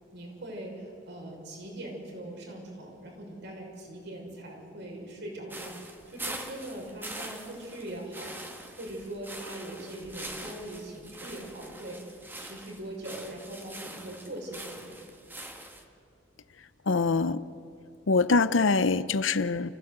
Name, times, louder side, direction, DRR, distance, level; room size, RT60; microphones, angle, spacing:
voice 1, 0.1-12.0 12.4-15.0, right 1 dB, 65° right, 6.2 m, -41 dB
sound 1, 5.5-15.8, right 1 dB, 10° right, 2.0 m, -43 dB
voice 2, 16.9-17.4 18.1-19.7, left 4 dB, 85° left, 0.8 m, -24 dB
29.5 x 15.5 x 8.1 m
head